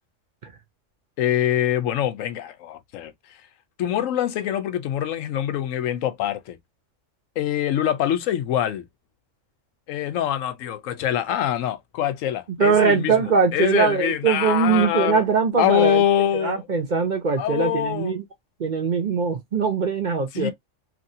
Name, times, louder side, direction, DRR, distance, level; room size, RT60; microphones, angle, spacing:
voice 1, 1.2-3.1 3.8-6.6 7.4-8.8 9.9-15.2 15.6-16.7 17.4-18.2 20.3-20.5, left 10 dB, 85° left, 1.0 m, -24 dB
voice 2, 12.6-16.0 16.3-18.2 18.6-20.5, right 5 dB, 45° right, 0.7 m, -21 dB
3.0 x 2.5 x 2.6 m
omnidirectional pair, 1.3 m